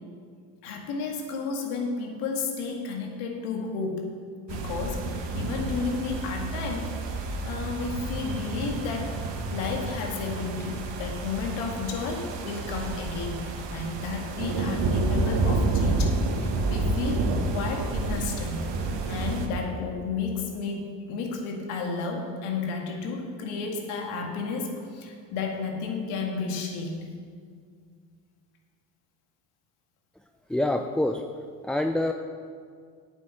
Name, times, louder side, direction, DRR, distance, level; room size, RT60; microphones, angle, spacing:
voice 1, 0.6-4.1 4.5-16.2 16.7-18.7 19.1-27.0, left 4 dB, 80° left, 1 dB, 2.1 m, -32 dB
sound 1, 4.5-19.5, right 2 dB, 55° right, 1.7 m, -29 dB
voice 2, 30.5-31.2 31.6-32.1, left 1 dB, ahead, 5 dB, 0.5 m, -25 dB
9.5 x 7.3 x 7.8 m, 2.1 s
hypercardioid pair, 60°, 50 cm